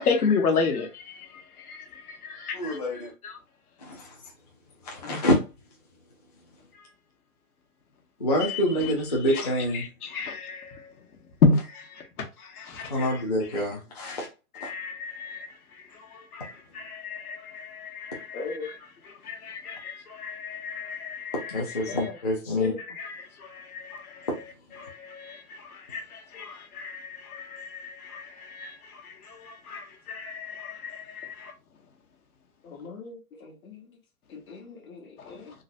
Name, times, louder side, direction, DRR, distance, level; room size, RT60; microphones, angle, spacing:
voice 1, 0.0-2.8 3.2-3.4 5.0-5.2 8.5-8.9 9.3-10.9 11.4-13.2 14.1-14.2 14.6-15.5 15.9-18.8 19.0-22.0 22.8-24.3 24.8-31.5 35.2-35.4, left 4 dB, 90° left, 1.1 m, -32 dB
voice 2, 2.5-3.1 3.8-4.1 4.8-5.4 8.2-9.8 12.9-14.3 14.6-14.7 21.5-22.7 24.3-24.4, left 1 dB, 30° left, 0.5 m, -26 dB
voice 3, 18.3-18.7 22.0-22.1 22.6-22.8 32.6-33.8 34.3-35.5, left 4 dB, 70° left, 1.4 m, -38 dB
3.8 x 2.0 x 2.6 m
hypercardioid pair, 180°, 43 cm